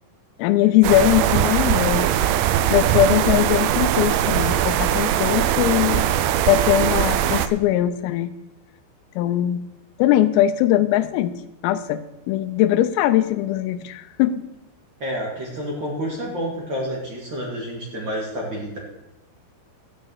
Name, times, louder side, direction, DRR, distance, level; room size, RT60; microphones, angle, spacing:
voice 1, 0.4-2.1 2.7-6.0 6.5-8.3 9.2-9.7 10.0-11.3 11.6-12.0 12.3-14.4, left 12 dB, 85° left, 10 dB, 3.4 m, -20 dB
sound 1, 0.8-7.5, right 11 dB, 85° right, 2.6 m, -20 dB
voice 2, 15.0-18.8, equal, 55° right, -3 dB, 1.3 m, -29 dB
13.0 x 6.7 x 8.0 m, 0.91 s
omnidirectional pair, 5.9 m